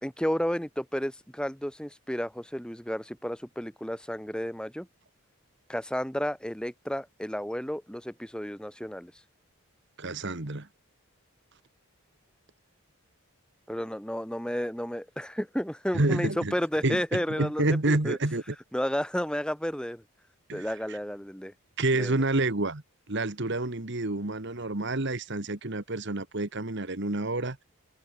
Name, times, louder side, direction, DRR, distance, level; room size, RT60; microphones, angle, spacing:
voice 1, 0.0-4.9 5.7-9.1 13.7-18.2 18.7-20.0 20.5-21.5 22.0-22.2, equal, 5° left, 2.0 m, -32 dB
voice 2, 10.0-10.7 15.9-16.5 16.8-18.5 20.5-21.0 21.8-27.6, right 2 dB, 50° right, 1.6 m, -29 dB
head